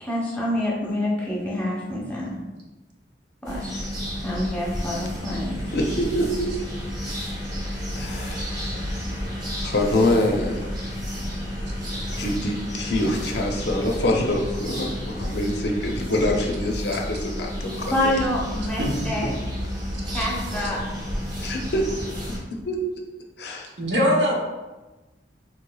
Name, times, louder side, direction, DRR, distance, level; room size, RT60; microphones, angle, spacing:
voice 1, 0.0-2.4 3.4-3.8 4.2-5.6 17.9-19.3 20.1-20.8, left 1 dB, 10° left, -5 dB, 0.8 m, -27 dB
sound 1, 3.4-22.4, equal, 25° right, 0.9 m, -31 dB
voice 2, 5.7-6.5 8.0-8.7 9.6-10.6 12.2-18.1 21.4-21.8 22.7-22.8 23.4-23.7, left 1 dB, 65° left, 1 dB, 0.5 m, -25 dB
voice 3, 23.8-24.3, equal, 70° right, -1 dB, 0.8 m, -20 dB
4.1 x 3.0 x 2.3 m, 1.1 s
head